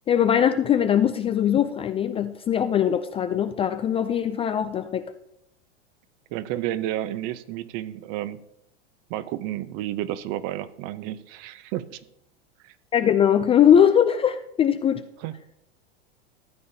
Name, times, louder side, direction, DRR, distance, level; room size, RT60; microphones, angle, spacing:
voice 1, 0.1-5.0 12.9-15.0, left 9 dB, 20° left, 10 dB, 0.3 m, -21 dB
voice 2, 6.3-8.4 9.1-12.0 12.6-12.7 15.2-15.3, right 13 dB, 50° right, 14 dB, 0.7 m, -31 dB
14.0 x 8.6 x 2.8 m, 0.79 s
hypercardioid pair, 105°, 34 cm